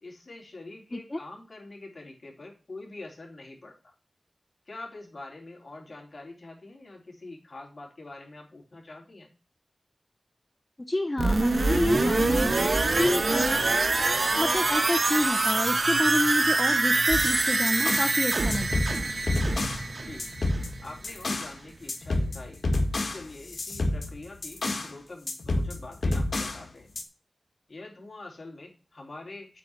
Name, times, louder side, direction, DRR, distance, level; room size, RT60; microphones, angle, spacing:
voice 1, 0.0-3.8 4.7-9.3 19.9-20.3 20.8-22.6 23.0-26.9 27.7-29.6, left 2 dB, 50° left, 0 dB, 3.5 m, -45 dB
voice 2, 10.9-12.6 13.0-13.6 13.9-14.0 14.3-19.0, left 2 dB, 25° left, 6 dB, 0.6 m, -28 dB
sound 1, 11.2-20.9 21.2-21.3, right 3 dB, 60° right, 1.1 m, -25 dB
sound 2, 17.1-18.2 18.5-19.9 20.2-21.6 21.9-24.9 25.3-26.6 27.0-27.1, left 2 dB, 75° left, 1.9 m, -29 dB
8.2 x 4.9 x 7.1 m, 0.34 s
wide cardioid pair, 85°, 0 cm